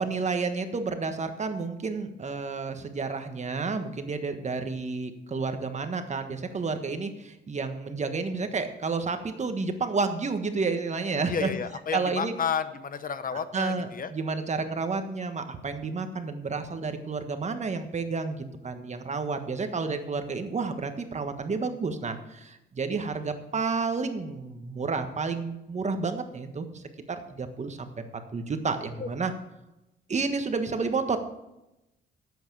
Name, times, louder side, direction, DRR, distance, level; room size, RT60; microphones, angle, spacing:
voice 1, 0.0-11.5 11.9-12.3 13.5-26.8 27.1-29.3 30.1-31.2, right 4 dB, 35° right, 7 dB, 1.4 m, -30 dB
voice 2, 11.3-14.1 29.0-29.1, left 7 dB, 45° left, 12 dB, 0.8 m, -31 dB
10.0 x 8.3 x 6.9 m, 0.92 s
cardioid pair, 90°, 20 cm